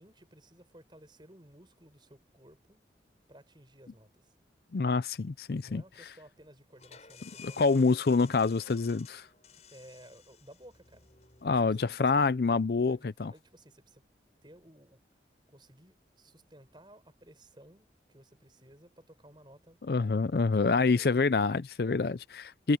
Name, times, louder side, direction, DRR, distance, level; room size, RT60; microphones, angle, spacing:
voice 1, 0.0-2.8 3.3-4.3 5.6-7.6 9.7-11.1 12.0-12.3 12.8-14.1 14.4-15.0 15.5-19.8 20.3-21.1 21.8-22.0, right 1 dB, 25° right, 6.0 m, -56 dB
voice 2, 4.7-5.8 7.4-9.3 11.4-13.3 19.9-22.8, left 4 dB, 60° left, 0.5 m, -27 dB
sound 1, 6.8-12.2, left 6 dB, 40° left, 6.6 m, -54 dB
head